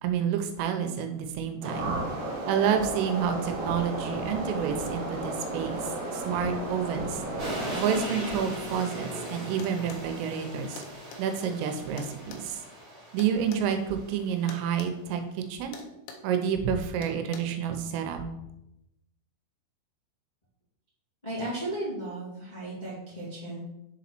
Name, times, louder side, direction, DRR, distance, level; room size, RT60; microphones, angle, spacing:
voice 1, 0.0-1.9 2.5-5.8 6.1-7.2 7.7-10.8 11.2-12.6 13.1-15.8 16.2-18.2, right 8 dB, 90° right, 7 dB, 3.3 m, -29 dB
sound 1, 1.6-8.0, right 2 dB, 65° right, 2.7 m, -33 dB
sound 2, 7.4-14.5, equal, 30° right, 2.0 m, -39 dB
sound 3, 9.6-10.1 10.8-11.2 12.0-13.7 14.5-14.9 15.2-15.4 15.7-16.3 17.0-17.4, left 4 dB, 80° left, 2.5 m, -44 dB
voice 2, 21.2-23.6, right 1 dB, 50° left, -9 dB, 0.5 m, -35 dB
7.0 x 4.1 x 4.3 m, 0.87 s
omnidirectional pair, 5.7 m